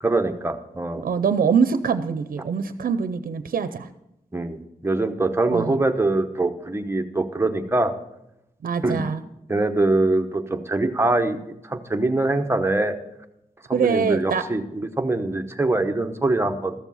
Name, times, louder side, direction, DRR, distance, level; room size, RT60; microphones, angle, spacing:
voice 1, 0.0-1.0 4.3-7.9 8.8-9.0 9.5-11.4 11.6-13.0 13.7-16.7, right 2 dB, 15° right, 5 dB, 1.0 m, -23 dB
voice 2, 1.0-3.9 5.5-5.8 8.6-9.2 13.7-14.4, right 6 dB, 85° right, 11 dB, 0.6 m, -23 dB
14.0 x 7.2 x 5.6 m, 0.85 s
wide cardioid pair, 95°, 14 cm